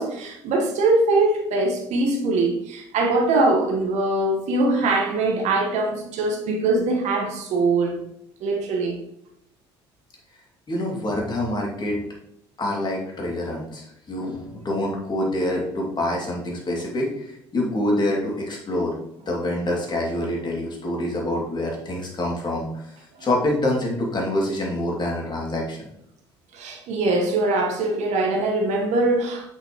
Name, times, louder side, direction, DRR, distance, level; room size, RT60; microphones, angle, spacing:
voice 1, 0.0-8.0 8.4-9.0 19.3-19.4 26.5-29.5, right 2 dB, 60° right, 1.5 m, -22 dB
voice 2, 10.7-12.0 12.6-19.0 19.3-22.9 23.2-25.9, left 1 dB, 35° left, 2.7 m, -26 dB
8.2 x 5.9 x 3.1 m
hypercardioid pair, 55°, 13 cm